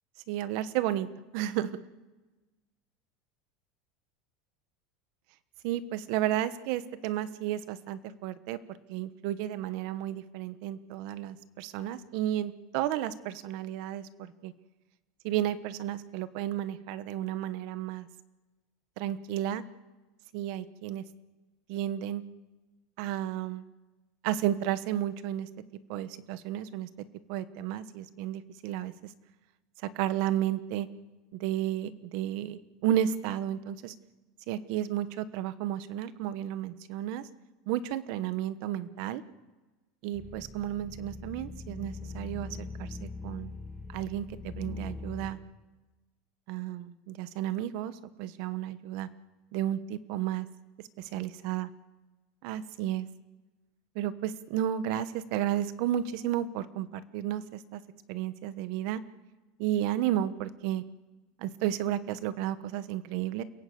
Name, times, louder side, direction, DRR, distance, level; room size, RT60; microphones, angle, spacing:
voice 1, 0.3-1.1 1.3-1.8 5.6-8.6 8.9-14.5 15.2-18.1 19.0-19.6 20.3-21.0 21.7-22.2 23.0-23.6 24.2-25.5 25.9-26.9 27.3-28.9 29.9-30.9 31.4-33.9 34.5-37.3 37.7-39.2 40.0-43.5 43.9-45.4 46.5-49.1 49.5-50.5 51.0-51.7 52.4-53.1 53.9-57.8 58.1-59.0 59.6-60.8 61.4-63.4, right 12 dB, 50° right, 14 dB, 1.2 m, -32 dB
sound 1, 40.1-45.3, left 4 dB, 10° left, 1.8 m, -42 dB
29.5 x 17.0 x 7.9 m, 1.2 s
supercardioid pair, 170°, 0 cm